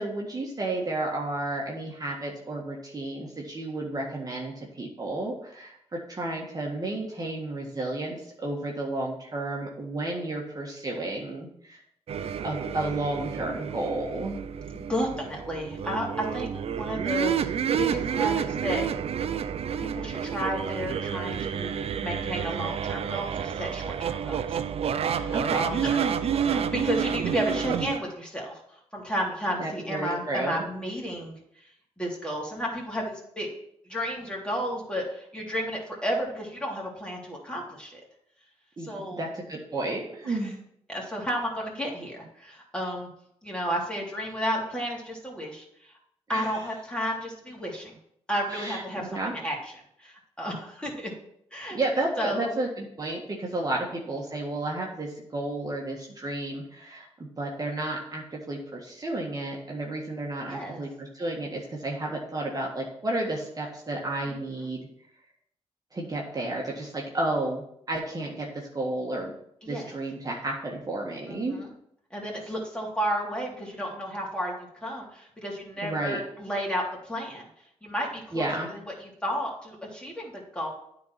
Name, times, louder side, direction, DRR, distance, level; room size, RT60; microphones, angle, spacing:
voice 1, 0.0-11.8 12.4-14.4 25.3-25.7 29.6-30.6 38.8-40.6 46.3-46.5 48.5-49.3 51.7-64.8 65.9-68.5 68.7-69.3 69.7-71.6 75.8-76.2 78.3-78.7, right 2 dB, 35° right, -2 dB, 1.7 m, -32 dB
sound 1, 12.1-28.0, right 8 dB, 60° right, 0.5 m, -29 dB
voice 2, 14.7-16.5 16.7-18.8 19.8-21.7 22.0-24.6 25.1-31.7 32.0-33.5 33.8-38.0 38.8-39.2 40.2-40.5 40.9-43.1 43.4-45.9 46.3-48.0 48.3-49.7 50.0-51.1 51.5-51.8 52.2-52.5 60.5-60.8 64.3-64.4 69.6-69.9 71.3-71.7 72.1-77.4 77.8-80.7, equal, 10° left, -2 dB, 3.2 m, -32 dB
9.2 x 4.1 x 5.8 m, 0.72 s
supercardioid pair, 60°, 11 cm